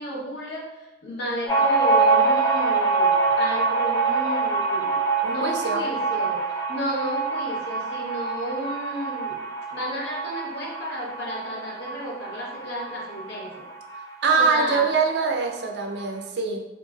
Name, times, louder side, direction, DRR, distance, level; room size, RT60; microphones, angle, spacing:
voice 1, 0.0-9.4 9.7-13.7 14.3-14.9, equal, 65° left, -2 dB, 0.7 m, -33 dB
sound 1, 1.5-14.6 14.9-15.0 15.3-16.0, right 4 dB, 20° left, 0.4 m, -25 dB
voice 2, 5.2-5.8 14.2-16.7, right 4 dB, 65° right, 2 dB, 0.4 m, -23 dB
3.1 x 2.4 x 2.3 m, 1.0 s
head